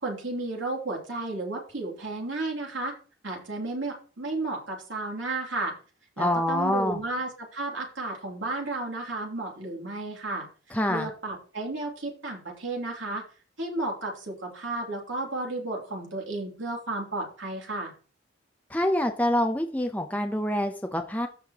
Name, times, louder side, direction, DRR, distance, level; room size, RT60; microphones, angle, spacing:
voice 1, 0.0-2.9 3.2-5.7 6.2-10.5 10.9-13.2 13.6-17.9, right 2 dB, 80° right, 0 dB, 2.9 m, -33 dB
voice 2, 6.2-7.0 10.7-11.1 18.7-21.3, left 1 dB, 10° left, 5 dB, 0.7 m, -26 dB
15.0 x 5.7 x 3.0 m, 0.38 s
head